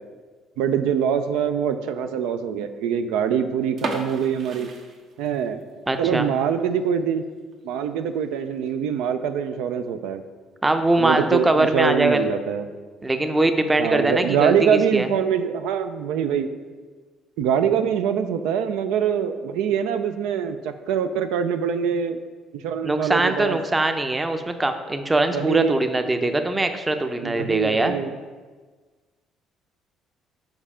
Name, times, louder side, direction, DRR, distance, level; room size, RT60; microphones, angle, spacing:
voice 1, 0.6-4.7 5.2-5.6 6.0-7.2 7.6-10.2 11.0-12.7 13.8-16.5 17.4-22.2 22.5-23.6 25.3-25.8 27.2-28.1, right 8 dB, 85° right, 9 dB, 0.3 m, -24 dB
sound 1, 3.7-5.6 5.9-6.0 6.6-6.8 7.2-7.3 7.5-7.6 8.4-8.7, right 3 dB, 60° right, 0.9 m, -33 dB
voice 2, 5.9-6.3 10.6-12.2 13.0-14.6 14.9-15.1 22.8-28.0, right 2 dB, 15° right, 7 dB, 0.5 m, -22 dB
5.4 x 4.5 x 4.9 m, 1.4 s
supercardioid pair, 85°, 0 cm